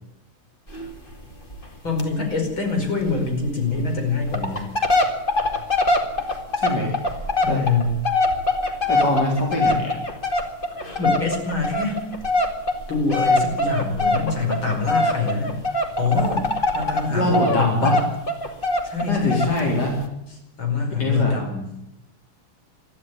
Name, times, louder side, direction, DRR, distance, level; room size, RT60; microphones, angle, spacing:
sound 1, 0.7-0.9 1.1-1.2 1.5-1.7 2.0-2.1 2.4-2.5 3.1-3.2 3.7-3.8 4.2-17.1 17.3-19.6 20.0-20.1, left 2 dB, 25° left, 2.5 m, -23 dB
voice 1, 1.8-4.6 7.4-7.9 10.8-12.0 12.9-15.5 16.0-16.5 16.7-17.9 18.8-19.8 20.3-21.7, left 4 dB, 70° left, 2 dB, 5.8 m, -24 dB
voice 2, 6.6-6.9 7.5-7.6 8.9-9.9 17.1-18.0 19.0-20.0 21.0-21.4, left 1 dB, 50° left, 0 dB, 4.7 m, -23 dB
21.5 x 13.5 x 9.5 m, 0.87 s
omnidirectional pair, 2.3 m